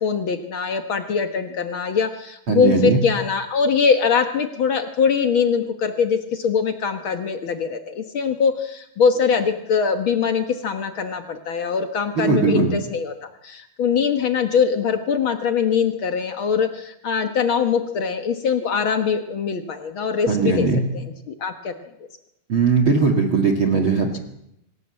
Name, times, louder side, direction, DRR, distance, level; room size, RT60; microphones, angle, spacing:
voice 1, 0.0-13.1 13.4-20.7 20.9-21.7, left 6 dB, 80° left, 6 dB, 1.1 m, -22 dB
voice 2, 2.5-3.0 12.2-12.7 20.3-20.8 22.5-24.2, right 4 dB, 40° right, 5 dB, 2.1 m, -19 dB
26.0 x 17.5 x 7.7 m, 0.80 s
omnidirectional pair, 4.4 m